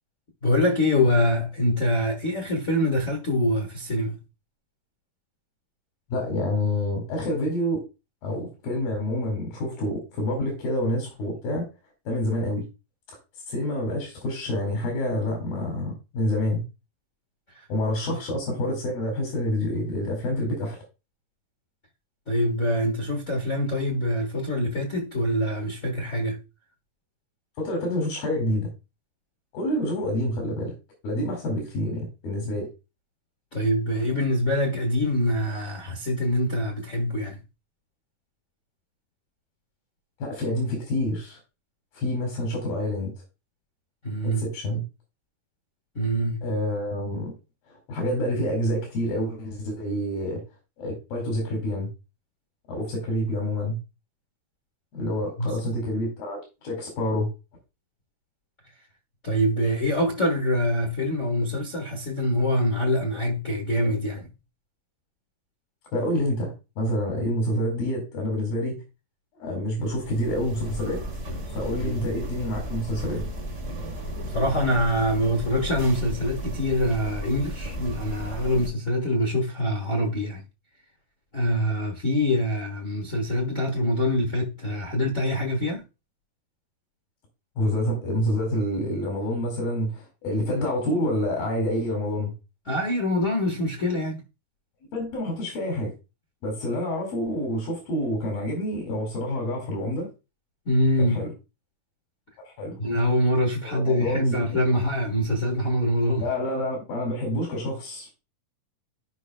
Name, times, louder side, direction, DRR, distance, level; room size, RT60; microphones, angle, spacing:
voice 1, 0.4-4.2 17.5-17.6 22.3-26.4 33.5-37.4 44.0-44.4 45.9-46.4 55.4-55.6 59.2-64.3 71.6-72.0 74.3-80.4 81.3-85.8 92.7-94.2 100.6-101.3 102.8-106.3, left 1 dB, 65° left, 0.7 m, -24 dB
voice 2, 6.1-7.8 8.2-11.7 12.1-12.7 13.5-16.6 17.7-20.8 27.6-28.7 29.5-30.7 31.0-32.7 40.2-41.4 41.9-43.1 44.2-44.8 46.4-47.3 47.7-50.4 50.8-51.9 52.7-53.8 54.9-57.3 65.9-68.8 69.4-71.0 71.5-73.2 87.6-92.3 94.9-95.9 96.4-100.1 101.0-101.3 102.4-102.8 103.6-104.4 106.2-108.1, left 1 dB, 85° left, 4.0 m, -27 dB
sound 1, 69.8-78.7, equal, 40° right, 1.1 m, -34 dB
13.5 x 5.3 x 2.2 m
omnidirectional pair, 4.1 m